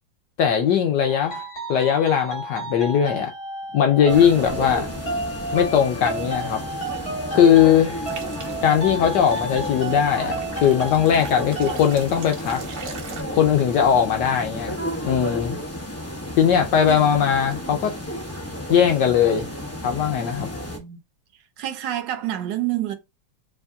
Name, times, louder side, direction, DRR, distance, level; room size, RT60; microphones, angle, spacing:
voice 1, 0.4-1.4 1.7-3.3 3.7-4.9 5.5-6.6 7.3-7.9 8.6-12.6 13.3-14.7 15.0-15.6 16.4-17.9 18.7-19.5 19.8-20.5, left 8 dB, 70° left, 1.2 m, -19 dB
sound 1, 1.0-11.9, right 2 dB, 30° left, 2.6 m, -33 dB
sound 2, 4.1-20.8, left 1 dB, 15° left, 0.6 m, -32 dB
sound 3, 8.0-8.8 9.3-9.5 10.4-13.2, right 4 dB, 50° right, 1.1 m, -39 dB
voice 2, 16.9-17.3 20.4-20.5 20.8-21.0 21.6-23.0, right 13 dB, 70° right, 1.4 m, -29 dB
4.7 x 3.4 x 2.6 m
omnidirectional pair, 2.1 m